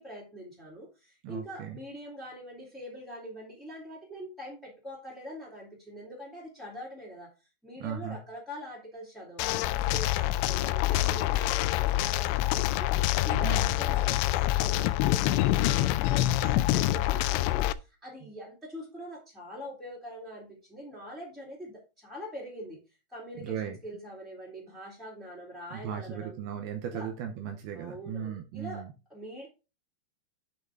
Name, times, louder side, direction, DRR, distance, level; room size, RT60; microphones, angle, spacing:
voice 1, 0.0-7.3 7.6-22.8 23.1-26.4 26.9-27.1 27.7-29.5, equal, ahead, -5 dB, 2.2 m, -44 dB
voice 2, 1.2-1.8 7.8-8.2 13.3-13.8 23.4-23.8 25.7-28.9, right 8 dB, 75° right, 5 dB, 2.5 m, -37 dB
sound 1, 9.4-17.7, left 15 dB, 85° left, 2.7 m, -26 dB
9.1 x 6.0 x 3.7 m, 0.29 s
omnidirectional pair, 5.4 m